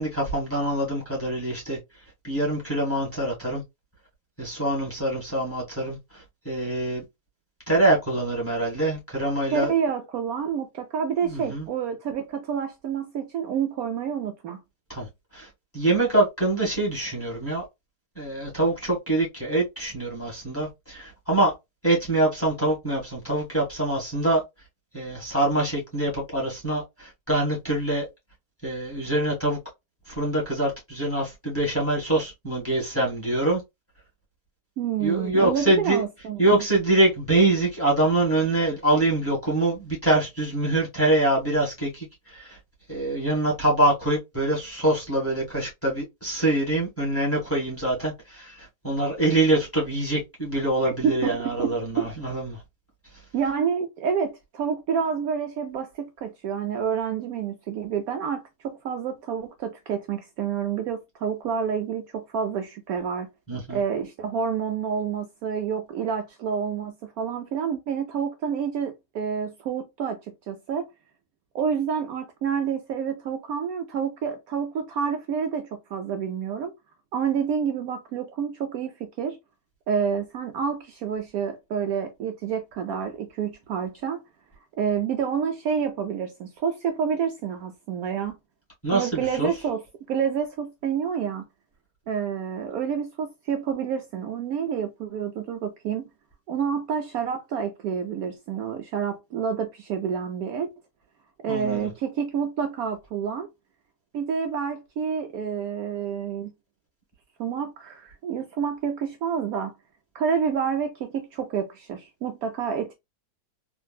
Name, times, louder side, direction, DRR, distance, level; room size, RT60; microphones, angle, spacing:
voice 1, 0.0-1.8 2.2-3.6 4.4-7.0 7.7-9.7 11.3-11.7 14.9-15.1 15.3-15.5 15.7-17.6 18.1-21.5 21.8-24.4 24.9-28.1 28.6-29.6 30.1-33.6 35.0-36.0 36.4-42.6 42.9-52.6 63.5-63.8 88.8-89.5 101.5-101.9, right 2 dB, 10° left, 1.4 m, -24 dB
voice 2, 9.5-14.6 34.8-36.6 50.9-52.1 53.3-63.3 63.7-70.2 70.5-70.9 71.5-76.7 77.1-79.4 79.9-84.2 84.8-88.4 88.9-89.8 90.1-91.4 92.1-96.1 96.5-100.7 101.4-103.5 104.1-106.5 107.4-109.7 110.1-112.9, right 7 dB, 70° right, 0.9 m, -28 dB
3.7 x 2.5 x 2.2 m
omnidirectional pair, 1.8 m